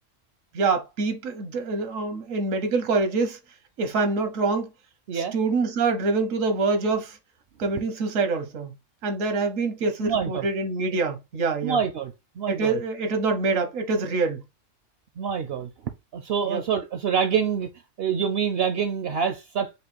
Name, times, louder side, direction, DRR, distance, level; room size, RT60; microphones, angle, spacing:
voice 1, 0.5-3.4 3.8-4.7 5.1-7.2 7.6-8.7 9.0-11.8 12.5-14.4 16.4-16.6, right 3 dB, 85° right, 1.3 m, -25 dB
voice 2, 10.0-10.5 11.6-12.8 15.2-15.7 16.1-17.7 18.0-19.7, right 7 dB, 65° right, 0.7 m, -26 dB
5.3 x 2.2 x 4.2 m
omnidirectional pair, 1.3 m